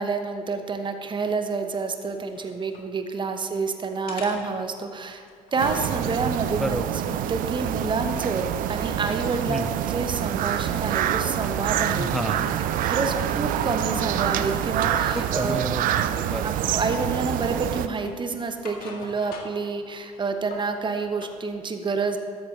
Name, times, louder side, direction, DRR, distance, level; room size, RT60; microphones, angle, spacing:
voice 1, 0.0-5.2 5.5-6.8 7.1-12.1 12.8-15.6 16.4-22.2, right 4 dB, 25° right, 7 dB, 1.0 m, -28 dB
sound 1, 1.7-2.9 3.3-3.7 4.1-6.0 6.6-8.4 8.7-10.6 11.0-11.8 12.1-13.5 14.9-15.3 16.0-16.2 16.5-17.3 17.7-19.7 20.0-21.4, left 4 dB, 55° left, 1.6 m, -45 dB
sound 2, 5.6-17.9, right 11 dB, 50° right, 0.5 m, -26 dB
voice 2, 12.0-12.5 15.1-16.5, equal, ahead, 11 dB, 0.5 m, -30 dB
13.0 x 8.8 x 3.3 m, 2.3 s
hypercardioid pair, 60°, 18 cm